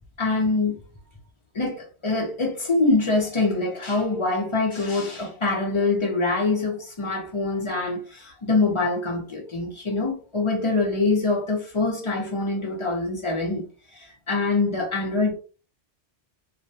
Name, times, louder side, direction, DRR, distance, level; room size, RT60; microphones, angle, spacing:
voice 1, 0.2-0.8 1.5-13.6 13.9-15.3, left 3 dB, 35° left, 0.5 m, -24 dB
2.3 x 2.1 x 2.7 m
omnidirectional pair, 1.1 m